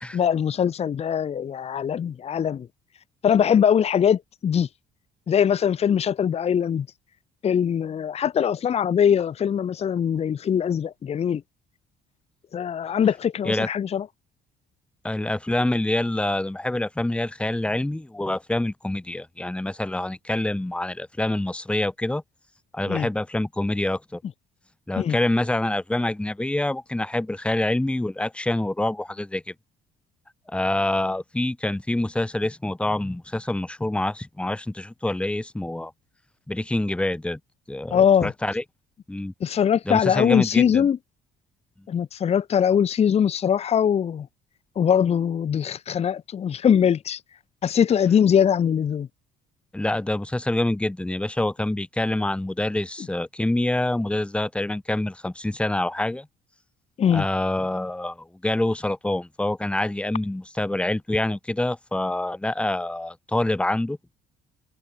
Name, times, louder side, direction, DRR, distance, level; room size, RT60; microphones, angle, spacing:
voice 1, 0.1-2.7 3.2-4.7 5.3-6.9 7.4-11.4 12.5-14.1 22.9-23.1 25.0-25.2 37.9-38.3 39.4-41.0 41.9-44.3 44.8-47.2 47.6-49.1 57.0-57.3, left 8 dB, 40° left, 0.9 m, -22 dB
voice 2, 15.0-22.2 22.7-24.2 24.9-29.5 30.5-35.9 36.5-37.4 37.7-38.6 39.1-39.3 39.9-40.9 49.7-56.3 57.1-64.0, left 1 dB, 5° left, 1.2 m, -26 dB
cardioid pair, 110°, 17 cm